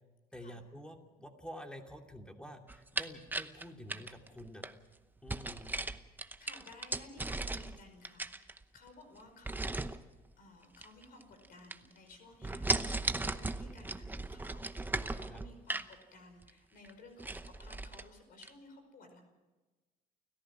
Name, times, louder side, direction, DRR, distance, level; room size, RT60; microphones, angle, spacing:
voice 1, 0.3-4.7 5.2-5.8 15.3-15.4, equal, 5° left, 3 dB, 2.7 m, -49 dB
sound 1, 2.7-4.7 5.3-7.8 8.0-8.9 9.4-10.0 10.7-11.5 11.7-12.1 12.4-15.9 16.4-16.5 16.8-16.9 17.2-18.0 18.4-18.5, right 2 dB, 10° right, 0.8 m, -37 dB
voice 2, 6.4-10.1 10.4-19.2, left 2 dB, 60° left, 5 dB, 5.3 m, -56 dB
29.5 x 14.5 x 6.1 m, 1.2 s
cardioid pair, 110°, 17 cm